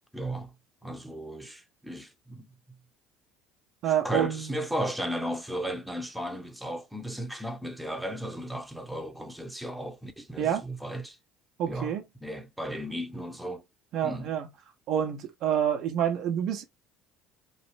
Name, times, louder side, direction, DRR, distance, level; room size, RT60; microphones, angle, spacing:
voice 1, 0.1-0.5 0.8-2.5 3.8-11.2 11.7-11.9 12.2-13.6 14.0-14.3, equal, ahead, 0.9 m, -35 dB
voice 2, 3.8-4.5 10.4-10.7 11.6-12.0 13.9-14.5 14.9-16.6, right 9 dB, 60° right, 0.8 m, -27 dB
3.2 x 2.1 x 3.2 m
hypercardioid pair, 75°, 0 cm